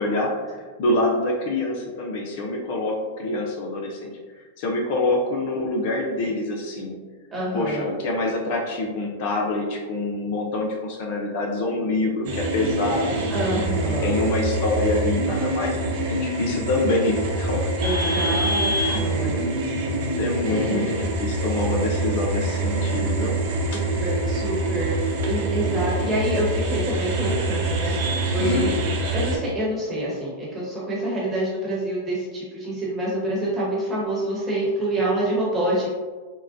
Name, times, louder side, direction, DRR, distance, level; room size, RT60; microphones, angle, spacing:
voice 1, 0.0-6.9 7.5-17.7 18.0-18.3 18.9-19.4 20.2-23.4 23.7-23.8 28.4-28.8, left 2 dB, 55° left, 0 dB, 0.5 m, -26 dB
voice 2, 7.3-7.9 13.3-14.2 17.8-19.4 20.5-20.9 23.7-24.9 25.2-28.8 29.1-35.9, right 1 dB, 15° right, -6 dB, 1.1 m, -27 dB
sound 1, 12.2-29.4, right 2 dB, 60° right, 0.7 m, -25 dB
3.7 x 2.2 x 2.5 m, 1.4 s
hypercardioid pair, 140°, 0 cm